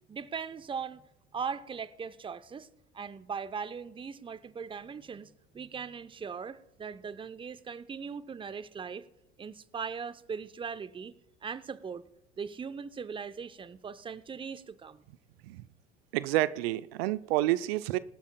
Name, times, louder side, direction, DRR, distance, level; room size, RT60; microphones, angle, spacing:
voice 1, 0.1-1.0 1.3-2.7 2.9-9.0 9.4-11.1 11.4-12.0 12.4-15.0, right 6 dB, 15° right, 0.7 m, -39 dB
voice 2, 16.1-18.0, right 16 dB, 65° right, 0.6 m, -29 dB
21.5 x 12.5 x 2.2 m
figure-of-eight pair, 70°, 33 cm